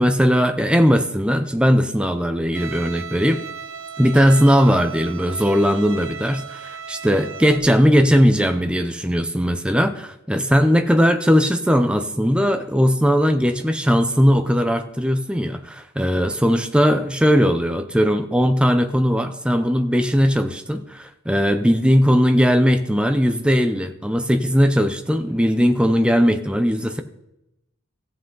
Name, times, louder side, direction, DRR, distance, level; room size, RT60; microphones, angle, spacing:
voice 1, 0.0-3.4 4.0-27.0, equal, 5° right, 8 dB, 0.5 m, -18 dB
Bowed string instrument, 2.5-7.6, right 6 dB, 75° right, 0.8 m, -35 dB
14.5 x 7.7 x 3.9 m, 0.89 s
head